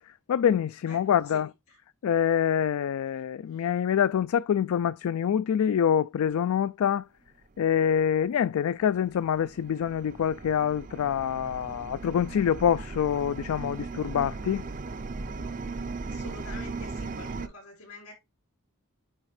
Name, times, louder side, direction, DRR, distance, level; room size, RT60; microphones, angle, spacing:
voice 1, 0.3-1.5 2.0-7.1 7.6-14.7, left 8 dB, 70° left, 0.3 m, -26 dB
voice 2, 0.8-1.4 1.7-1.8 3.5-3.7 16.0-18.1, left 3 dB, 85° left, 4.1 m, -47 dB
sound 1, 8.0-8.1 9.0-17.5, right 3 dB, 35° right, 0.5 m, -38 dB
8.9 x 3.6 x 3.2 m
head